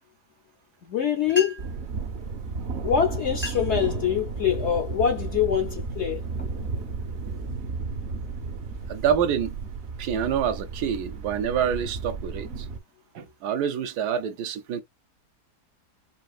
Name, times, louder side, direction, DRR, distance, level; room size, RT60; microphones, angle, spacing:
voice 1, 0.9-1.5 2.8-6.2, left 8 dB, 75° left, 0.6 m, -24 dB
sound 1, 1.0-1.1 1.3-1.9 2.8-2.9 3.3-3.8 4.3-4.7 5.3-5.6 6.1-7.3, left 1 dB, 15° left, 0.4 m, -38 dB
Thunder, 1.6-12.8, right 4 dB, 55° right, 0.8 m, -33 dB
voice 2, 8.9-9.6 10.0-12.7 13.1-14.8, right 8 dB, 75° right, 1.2 m, -27 dB
5.4 x 2.4 x 2.4 m
omnidirectional pair, 1.8 m